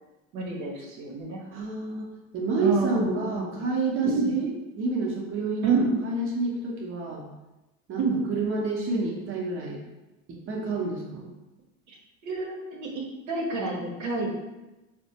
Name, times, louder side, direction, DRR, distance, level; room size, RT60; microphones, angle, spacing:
voice 1, 0.3-1.4 2.6-3.6 4.0-4.3 5.6-5.9 8.0-8.2 12.2-14.4, right 4 dB, 70° right, -1 dB, 0.9 m, -28 dB
voice 2, 1.5-7.3 7.9-9.8 10.3-11.3, right 3 dB, 30° right, -2 dB, 0.9 m, -29 dB
4.2 x 2.2 x 2.8 m, 1.0 s
hypercardioid pair, 85°, 42 cm